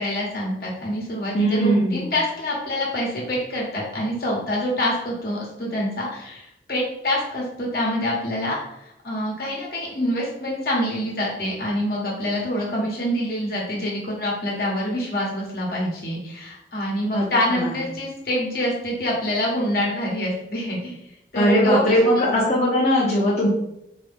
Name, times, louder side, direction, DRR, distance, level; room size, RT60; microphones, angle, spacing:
voice 1, 0.0-8.6 9.0-20.9 21.3-22.2, left 1 dB, 55° left, -3 dB, 1.5 m, -26 dB
voice 2, 1.3-2.0 17.1-17.2 17.5-17.8 21.3-23.5, equal, 40° left, -8 dB, 1.0 m, -19 dB
4.7 x 3.0 x 3.7 m, 0.81 s
head